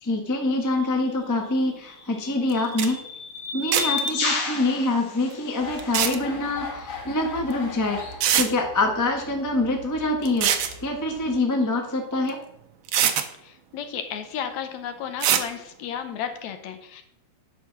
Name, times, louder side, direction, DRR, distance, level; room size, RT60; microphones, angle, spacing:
voice 1, 0.0-3.0 3.5-12.4, left 2 dB, 15° left, 2 dB, 0.5 m, -25 dB
sound 1, 0.6-0.8 1.8-6.0, left 4 dB, 90° left, 3.8 m, -31 dB
sound 2, 2.5-2.6 2.8-2.9 3.7-4.1 5.8-6.2 7.5-7.6 8.2-8.5 10.3-10.7 12.3-12.4 12.9-13.3 15.2-15.5, right 9 dB, 85° right, 1.1 m, -22 dB
sound 3, 5.6-11.4, left 4 dB, 55° left, 2.9 m, -40 dB
voice 2, 13.4-17.0, left 8 dB, 75° left, 8 dB, 2.2 m, -33 dB
10.5 x 5.6 x 6.0 m, 0.77 s
omnidirectional pair, 3.4 m